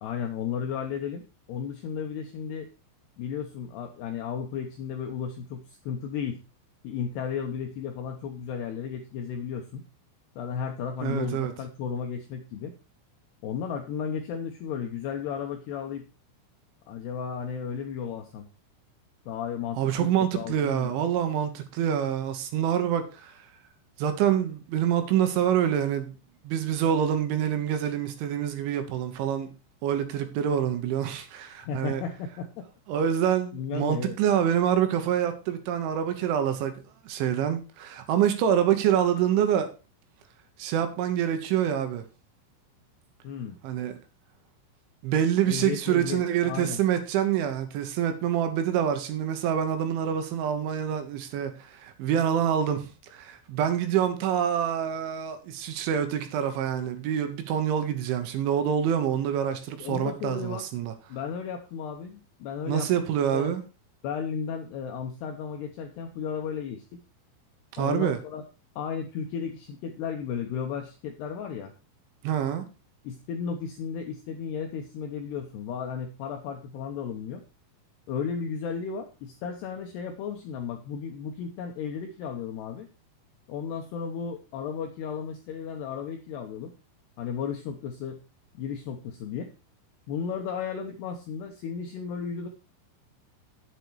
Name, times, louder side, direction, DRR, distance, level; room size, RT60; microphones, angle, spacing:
voice 1, 0.0-2.7 3.2-6.4 6.8-9.9 10.4-12.7 13.4-16.1 16.9-18.5 19.3-20.1 20.3-20.9 31.7-32.7 33.5-34.2 43.2-43.6 45.5-46.8 59.8-60.6 61.1-62.9 63.3-63.5 64.0-67.0 67.8-68.4 68.8-71.7 73.0-77.4 78.1-82.9 83.5-86.7 87.2-88.2 88.5-89.5 90.1-92.5, left 7 dB, 80° left, 2.4 m, -34 dB
voice 2, 11.0-11.5 19.8-23.5 24.0-26.1 26.4-29.5 29.8-32.0 32.9-39.7 40.6-42.0 43.6-43.9 45.0-60.9 62.7-63.6 67.7-68.2 72.2-72.7, right 9 dB, 75° right, 3.3 m, -26 dB
10.0 x 8.1 x 4.7 m
omnidirectional pair, 5.9 m